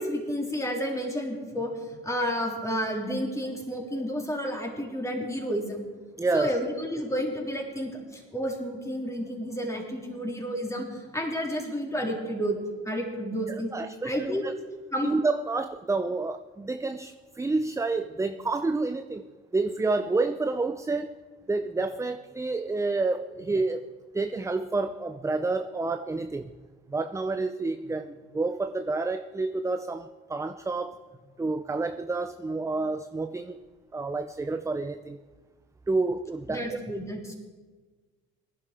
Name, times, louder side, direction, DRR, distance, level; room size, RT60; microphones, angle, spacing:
voice 1, 0.0-5.8 6.3-12.6 12.8-13.7 14.0-14.4 14.9-15.1 36.5-37.3, equal, 10° left, 0 dB, 3.7 m, -31 dB
voice 2, 6.2-6.5 13.5-14.5 15.0-19.2 19.5-21.2 21.5-23.9 24.1-26.5 26.9-31.0 31.4-33.6 33.9-35.2 35.9-36.8, right 3 dB, 10° right, 10 dB, 0.6 m, -29 dB
19.0 x 11.0 x 4.5 m, 1.4 s
hypercardioid pair, 65°, 32 cm